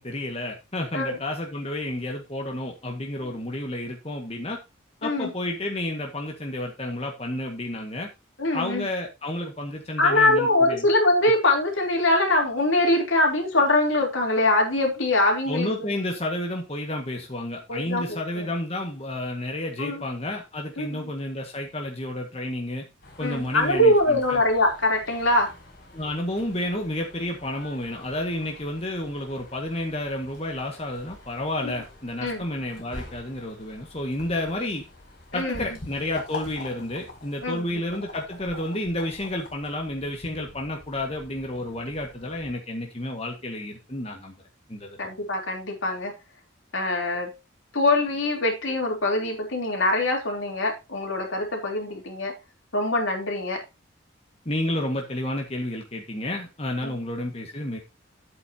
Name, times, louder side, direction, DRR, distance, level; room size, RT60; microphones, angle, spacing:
voice 1, 0.0-4.6 5.0-8.1 8.5-10.8 15.5-22.9 23.2-24.4 25.9-34.8 35.3-44.4 44.7-45.0 54.4-57.8, left 1 dB, 30° left, 1 dB, 1.8 m, -31 dB
voice 2, 8.4-8.9 10.0-15.9 17.7-18.5 19.8-20.0 20.8-21.1 23.2-25.5 31.6-31.7 32.2-32.4 35.3-35.6 37.4-37.8 45.0-46.1 46.7-47.3 47.7-52.3 52.7-53.6 56.8-56.9, left 1 dB, 80° left, 2 dB, 3.4 m, -23 dB
sound 1, 23.0-42.5, left 2 dB, 50° left, 4.6 m, -45 dB
11.0 x 8.5 x 2.8 m, 0.25 s
head